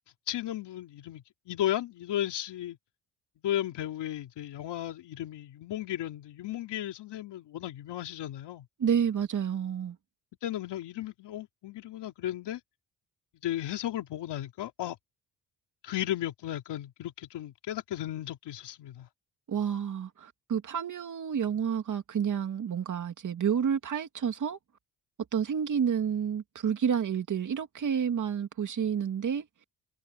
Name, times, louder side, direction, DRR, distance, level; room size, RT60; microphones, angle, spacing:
voice 1, 0.3-2.8 3.4-8.7 10.4-12.6 13.4-15.0 15.8-19.1, left 12 dB, 75° left, 2.9 m, -35 dB
voice 2, 8.8-10.0 19.5-24.6 25.3-29.5, right 7 dB, 45° right, 2.5 m, -29 dB
cardioid pair, 125°, 42 cm